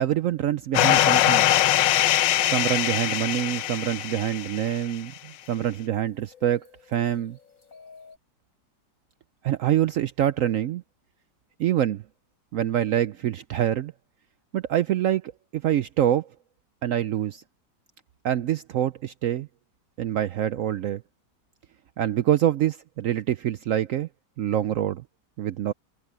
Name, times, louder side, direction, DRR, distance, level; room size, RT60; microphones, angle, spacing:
voice 1, 0.0-1.5 2.4-7.4 9.4-10.8 11.6-12.0 12.5-13.9 14.5-16.3 16.8-17.4 18.2-19.5 20.0-21.0 22.0-24.1 24.4-25.0 25.4-25.7, right 11 dB, 75° right, 0.7 m, -25 dB
sound 1, 0.7-4.8, left 13 dB, 85° left, 1.4 m, -22 dB
sound 2, 2.6-8.2, left 6 dB, 50° left, 7.1 m, -56 dB
omnidirectional pair, 1.9 m